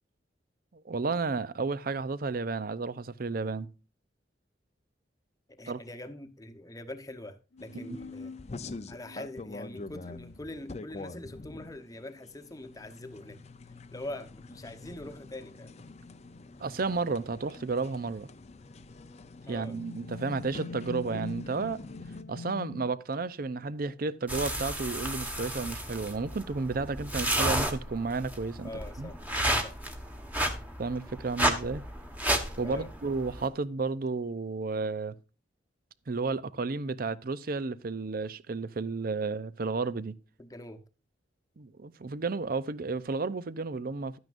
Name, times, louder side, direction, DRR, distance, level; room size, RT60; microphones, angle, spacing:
voice 1, 0.7-3.7 5.7-5.8 7.7-8.0 16.6-18.3 19.5-21.8 22.3-29.1 30.8-31.8 32.6-35.2 36.1-40.2 41.6-44.2, right 4 dB, 50° right, 0.6 m, -32 dB
voice 2, 5.6-8.3 8.9-13.4 13.9-15.7 19.5-19.8 28.6-29.1 29.6-29.7 32.6-32.9 40.4-40.8, left 1 dB, 20° left, 1.0 m, -43 dB
sound 1, 7.5-11.4 13.8-13.9 14.6-14.7 15.5-16.6 17.5-17.9 18.6-22.9, left 3 dB, 80° left, 0.8 m, -45 dB
sound 2, 7.6-22.2, left 3 dB, 35° left, 0.6 m, -46 dB
sound 3, 24.3-33.5, right 1 dB, 10° right, 1.3 m, -32 dB
12.0 x 9.5 x 2.5 m
head